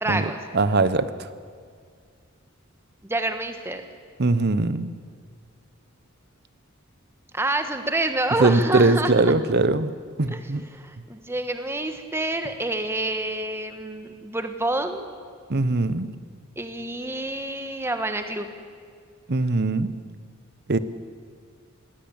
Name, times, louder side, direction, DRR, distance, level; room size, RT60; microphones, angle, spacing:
voice 1, 0.0-0.4 3.0-3.8 7.3-9.1 10.3-10.5 10.7-15.1 16.6-18.5, right 2 dB, 10° right, 7 dB, 1.4 m, -27 dB
voice 2, 0.5-1.1 4.2-4.9 8.4-9.9 10.2-10.6 15.5-16.1 19.3-19.9 20.7-20.8, right 3 dB, 50° right, 14 dB, 0.9 m, -21 dB
20.5 x 16.5 x 8.8 m, 2.1 s
head